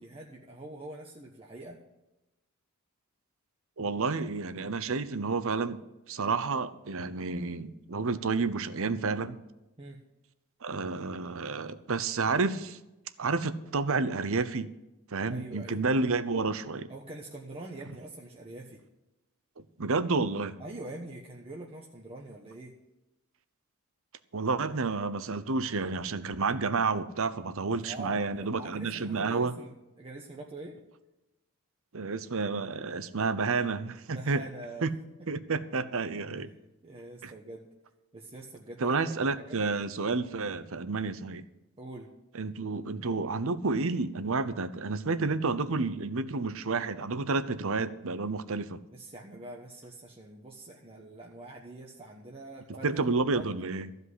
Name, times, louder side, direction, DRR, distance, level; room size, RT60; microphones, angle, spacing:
voice 1, 0.0-1.8 9.8-10.0 15.3-15.8 16.9-18.8 20.6-22.7 27.7-30.7 34.1-34.9 36.8-37.7 38.1-39.6 41.8-42.1 48.9-52.9 53.3-53.5, right 2 dB, 25° right, -2 dB, 1.2 m, -44 dB
voice 2, 3.8-5.8 6.1-9.4 10.6-12.8 13.2-14.7 15.1-16.9 19.6-20.5 24.3-29.5 31.9-34.4 34.8-34.9 35.3-36.5 37.2-37.3 38.8-41.4 42.3-48.8 52.8-53.9, right 4 dB, 65° right, 13 dB, 0.8 m, -30 dB
14.5 x 5.4 x 9.7 m, 0.97 s
head